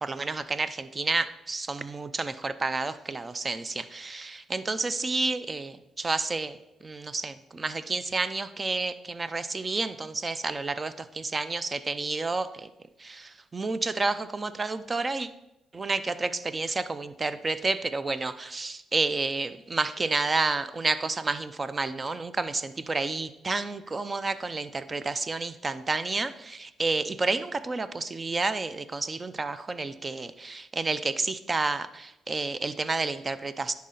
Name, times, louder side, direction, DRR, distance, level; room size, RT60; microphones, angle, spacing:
voice 1, 0.0-12.7 13.0-15.3 15.7-33.7, right 3 dB, 30° right, 13 dB, 0.5 m, -30 dB
10.5 x 4.2 x 3.9 m, 0.93 s
cardioid pair, 90°, 0 cm